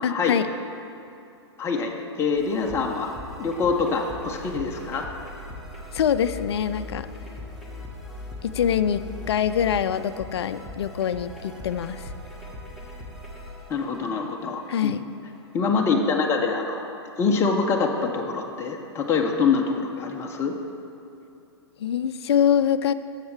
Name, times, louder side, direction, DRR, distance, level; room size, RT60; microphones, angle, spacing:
voice 1, 0.0-0.5 5.9-7.1 8.4-12.1 14.7-15.0 21.8-22.9, left 8 dB, 65° left, 13 dB, 0.4 m, -24 dB
voice 2, 1.6-1.9 2.2-3.1 3.4-5.1 13.7-15.0 15.5-20.5, left 5 dB, 20° left, 1 dB, 0.7 m, -25 dB
sound 1, 2.4-15.5, left 2 dB, ahead, 1.2 m, -40 dB
12.5 x 7.3 x 3.3 m, 2.7 s
hypercardioid pair, 115°, 15 cm